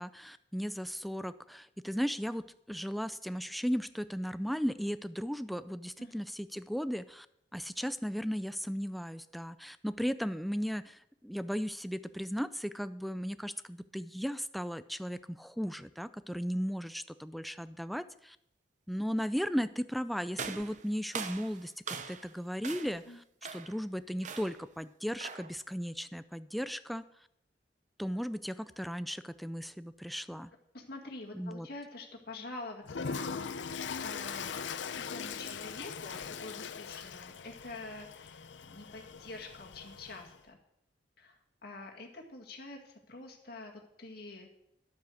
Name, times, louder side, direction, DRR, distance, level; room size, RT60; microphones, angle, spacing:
voice 1, 0.0-7.3 7.5-18.4 18.9-23.0 23.5-27.0 28.0-30.5 31.3-31.7, equal, ahead, 13 dB, 0.4 m, -36 dB
sound 1, 20.4-22.3 22.6-23.1 23.4-23.8 24.2-24.7 25.2-25.6, right 6 dB, 45° right, 0.8 m, -42 dB
voice 2, 30.7-40.6 41.2-44.5, left 2 dB, 55° left, 1 dB, 2.0 m, -47 dB
Toilet flush, 32.8-40.4, left 6 dB, 85° left, 0.6 m, -41 dB
12.5 x 8.2 x 6.3 m, 0.78 s
head